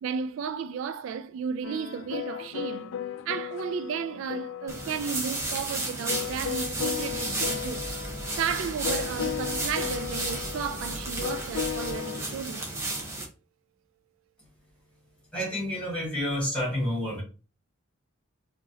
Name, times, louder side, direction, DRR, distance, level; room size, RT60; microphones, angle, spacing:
voice 1, 0.0-2.9 3.3-7.8 8.4-12.7, right 6 dB, 70° right, 0.3 m, -33 dB
sound 1, 1.6-12.2, left 9 dB, 85° left, 0.4 m, -36 dB
sound 2, 4.7-13.3, right 2 dB, 15° right, 1.0 m, -33 dB
sound 3, 6.2-12.0, right 1 dB, 25° left, 1.9 m, -43 dB
voice 2, 15.3-17.2, left 1 dB, 5° left, 1.8 m, -29 dB
4.6 x 3.0 x 2.8 m
head